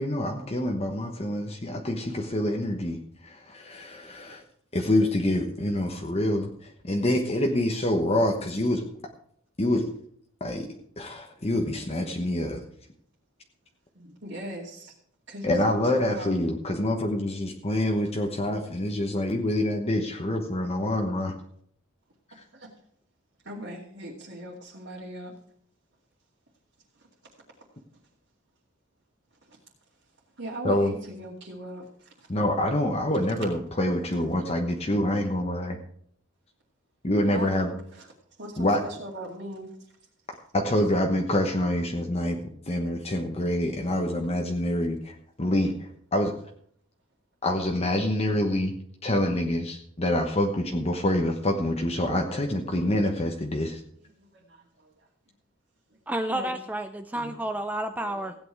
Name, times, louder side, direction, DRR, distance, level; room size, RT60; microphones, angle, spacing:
voice 1, 0.0-4.4 4.7-8.8 9.6-9.9 10.4-10.7 11.0-12.6 15.4-21.3 22.4-22.5 30.6-30.9 32.3-35.8 37.0-37.7 38.6-38.8 40.5-46.3 47.4-48.7 49.0-53.8, left 1 dB, 30° left, 2 dB, 1.1 m, -26 dB
voice 2, 13.9-14.9 15.3-16.4 22.3-22.7 23.4-25.3 27.0-27.1 29.4-29.6 30.4-32.3 37.2-38.1 38.4-39.7 53.9-54.9 56.3-56.5 57.1-57.3 58.0-58.2, right 1 dB, 55° right, -6 dB, 2.5 m, -40 dB
voice 3, 56.1-58.4, right 1 dB, 10° right, 7 dB, 0.5 m, -30 dB
16.0 x 8.9 x 4.8 m, 0.64 s
head